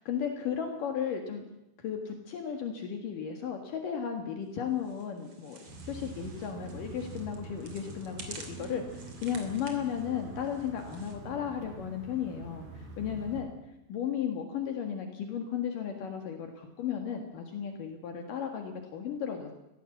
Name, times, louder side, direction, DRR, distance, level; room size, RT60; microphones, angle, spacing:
voice 1, 0.0-1.4 1.8-13.5 13.9-19.5, left 8 dB, 65° left, 4 dB, 3.3 m, -35 dB
sound 1, 4.8-11.2, right 4 dB, 40° right, 3.6 m, -51 dB
sound 2, 5.7-13.4, right 3 dB, 75° right, 6.3 m, -45 dB
21.5 x 16.5 x 7.9 m, 0.93 s
omnidirectional pair, 4.2 m